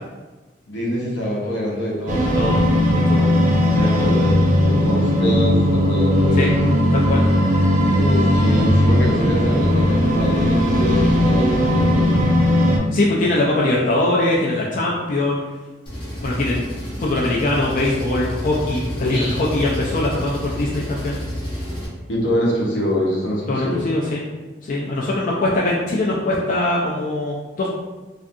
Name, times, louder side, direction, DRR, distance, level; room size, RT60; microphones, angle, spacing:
voice 1, 0.7-2.3 3.7-6.5 7.9-12.1 19.0-19.4 22.1-23.8, equal, 80° left, -4 dB, 0.7 m, -24 dB
sound 1, 2.1-12.8, equal, 45° right, 0.4 m, -17 dB
voice 2, 2.9-3.3 6.4-6.5 6.9-7.2 12.9-15.4 16.2-16.6 17.0-21.2 23.5-24.2 24.6-27.7, left 2 dB, 45° left, -4 dB, 0.3 m, -22 dB
Engine, 15.9-21.9, equal, 30° left, 0.8 m, -29 dB
2.4 x 2.4 x 2.6 m, 1.2 s
head